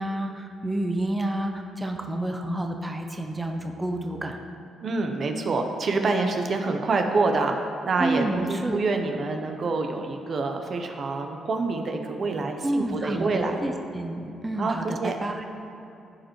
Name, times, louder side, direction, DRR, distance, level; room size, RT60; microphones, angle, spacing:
voice 1, 0.0-4.4 8.0-8.8 12.6-15.4, right 1 dB, 15° right, 3 dB, 0.7 m, -29 dB
voice 2, 4.8-13.6 14.6-15.2, right 3 dB, 50° right, 4 dB, 0.7 m, -26 dB
14.0 x 5.2 x 3.1 m, 2.8 s
cardioid pair, 90°, 0 cm